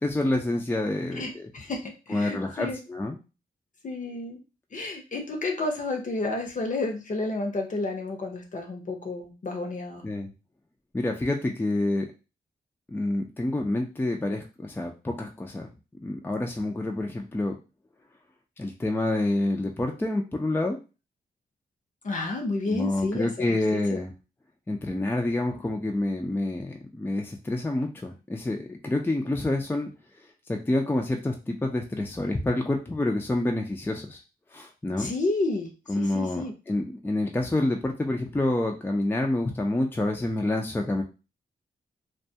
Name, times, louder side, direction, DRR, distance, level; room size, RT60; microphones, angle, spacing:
voice 1, 0.0-1.5 2.1-3.2 10.0-10.3 10.9-12.1 12.9-15.7 16.0-17.6 18.6-20.8 22.7-24.1 24.7-29.9 30.5-34.2 34.5-35.1 35.9-41.0, left 2 dB, 10° left, 2 dB, 0.4 m, -28 dB
voice 2, 1.1-2.8 3.8-4.4 4.7-10.1 22.0-24.0 35.0-36.5, left 2 dB, 50° left, 3 dB, 0.7 m, -31 dB
2.2 x 2.2 x 2.7 m, 0.30 s
cardioid pair, 65°, 17 cm